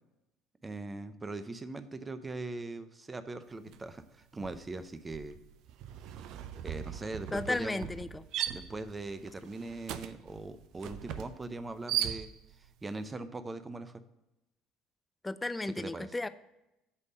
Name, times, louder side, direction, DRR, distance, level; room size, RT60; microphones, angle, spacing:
voice 1, 0.6-5.4 6.6-7.9 8.5-12.3 12.8-14.0 15.8-16.1, right 2 dB, 20° right, 11 dB, 0.7 m, -41 dB
sound 1, 3.7-3.9 4.2-12.7, right 11 dB, 65° right, 0.5 m, -39 dB
voice 2, 7.3-8.2 15.2-16.3, left 2 dB, 15° left, 13 dB, 0.4 m, -34 dB
8.3 x 3.5 x 6.5 m, 0.93 s
hypercardioid pair, 70°, 0 cm